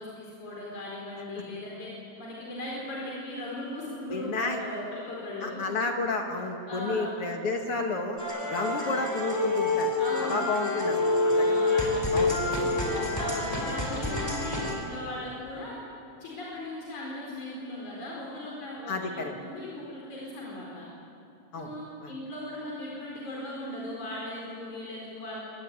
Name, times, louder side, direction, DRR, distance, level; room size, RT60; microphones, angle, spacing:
voice 1, 0.0-1.9 2.2-5.6 6.7-7.1 8.5-8.9 10.0-10.5 11.3-15.8 16.2-20.8 21.5-25.5, left 1 dB, 85° left, -4 dB, 6.0 m, -38 dB
voice 2, 4.1-4.6 5.4-8.2 8.5-9.9 10.2-11.5 12.1-12.4 18.9-19.3 21.5-21.7 22.0-22.1, left 3 dB, 55° left, 3 dB, 2.7 m, -31 dB
sound 1, 8.2-14.7, left 2 dB, 10° left, 4.3 m, -27 dB
25.5 x 19.5 x 9.7 m, 2.7 s
omnidirectional pair, 3.3 m